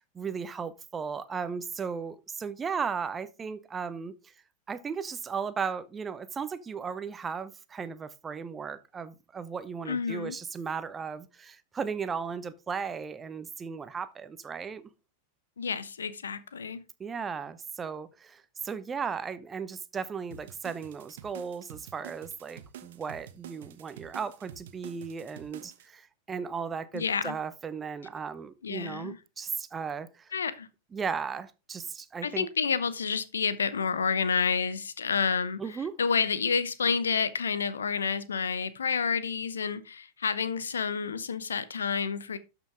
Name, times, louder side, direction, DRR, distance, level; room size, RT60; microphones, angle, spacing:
voice 1, 0.0-4.3 4.7-14.8 17.0-30.3 30.9-32.5 35.6-36.0, right 6 dB, 20° right, 0.8 m, -36 dB
voice 2, 9.9-10.4 15.6-16.8 26.9-27.4 28.6-29.2 30.3-30.7 32.2-35.6 36.0-42.4, left 6 dB, 70° left, 0.9 m, -29 dB
sound 1, 20.3-25.9, right 10 dB, 55° right, 1.1 m, -48 dB
12.5 x 6.1 x 3.7 m
figure-of-eight pair, 90°, 0 cm